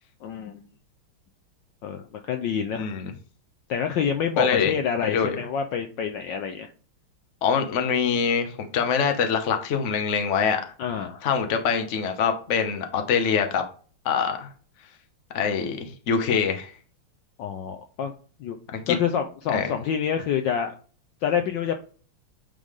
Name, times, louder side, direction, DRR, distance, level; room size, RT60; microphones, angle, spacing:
voice 1, 0.2-0.6 1.8-2.9 3.7-6.7 10.8-11.2 17.4-18.1 18.4-18.6 18.9-20.7 21.2-21.8, left 7 dB, 70° left, 1.1 m, -27 dB
voice 2, 2.7-3.1 4.4-4.8 5.0-5.4 7.4-10.6 11.2-13.6 14.0-14.5 15.3-16.7 18.7-18.9 19.5-19.7, left 6 dB, 50° left, 0.9 m, -24 dB
9.0 x 3.3 x 3.6 m
omnidirectional pair, 2.4 m